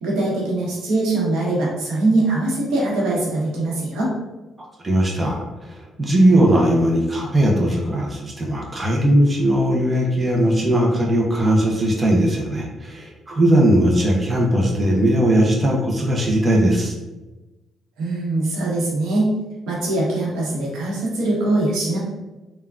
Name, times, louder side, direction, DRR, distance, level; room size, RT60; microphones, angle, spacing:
voice 1, 0.0-4.1 18.0-19.3 19.7-22.0, right 2 dB, 90° right, -4 dB, 0.9 m, -22 dB
voice 2, 4.8-5.4 5.7-16.9, right 1 dB, 25° right, -1 dB, 0.6 m, -18 dB
3.4 x 2.2 x 2.3 m, 1.1 s
cardioid pair, 90°, 0 cm